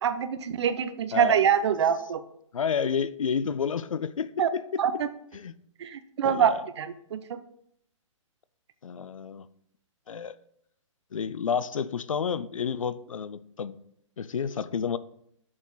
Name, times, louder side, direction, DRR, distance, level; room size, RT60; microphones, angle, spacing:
voice 1, 0.0-2.2 4.4-4.5 4.8-5.1 5.8-7.4, right 8 dB, 55° right, 0.7 m, -25 dB
voice 2, 2.5-4.8 5.3-5.5 6.2-6.6 8.8-9.5 10.1-10.3 11.1-13.8 14.2-15.0, left 6 dB, 80° left, 0.5 m, -30 dB
7.2 x 5.1 x 3.9 m
figure-of-eight pair, 125°, 17 cm